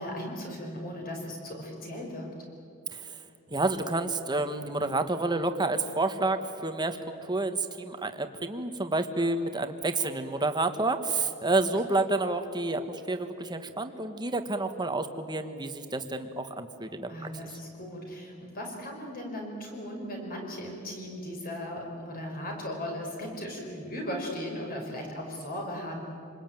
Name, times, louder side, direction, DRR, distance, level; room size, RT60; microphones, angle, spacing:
voice 1, 0.0-2.4 17.1-26.1, equal, 40° left, 1 dB, 5.2 m, -37 dB
voice 2, 3.5-17.3, right 2 dB, 20° right, 8 dB, 1.3 m, -29 dB
27.0 x 20.5 x 9.2 m, 2.7 s
head